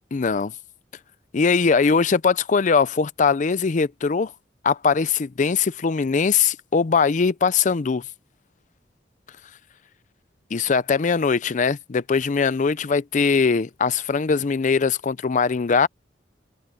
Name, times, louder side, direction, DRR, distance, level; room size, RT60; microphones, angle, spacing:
voice 1, 0.1-0.5 1.3-4.3 4.6-8.0 10.5-15.9, left 5 dB, 45° left, 0.5 m, -21 dB
head